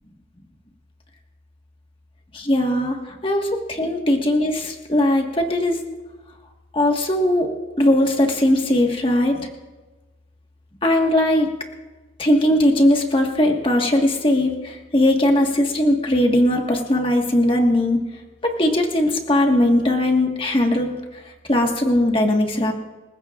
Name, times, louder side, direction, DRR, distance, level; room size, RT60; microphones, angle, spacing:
voice 1, 2.3-5.8 6.7-7.5 7.8-9.5 10.8-11.5 12.2-18.0 18.4-21.2 21.5-22.7, left 1 dB, 30° left, 2 dB, 1.6 m, -19 dB
27.0 x 15.5 x 2.5 m, 1.2 s
head